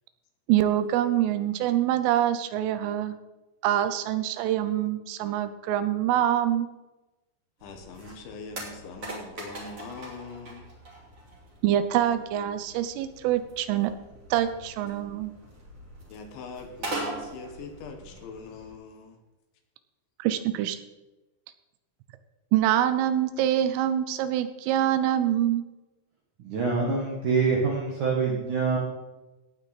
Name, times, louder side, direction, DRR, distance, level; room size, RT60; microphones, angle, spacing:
voice 1, 0.5-3.2 3.6-6.7 11.6-13.9 14.3-15.3 20.2-20.8 22.5-25.7, right 11 dB, 85° right, 11 dB, 3.3 m, -25 dB
voice 2, 7.6-10.7 16.1-19.2, left 4 dB, 70° left, 5 dB, 3.4 m, -42 dB
sound 1, 7.6-18.7, right 2 dB, 35° right, 3.4 m, -42 dB
voice 3, 26.4-28.8, right 4 dB, 65° right, -1 dB, 2.0 m, -25 dB
17.5 x 9.2 x 4.1 m, 1.1 s
omnidirectional pair, 5.8 m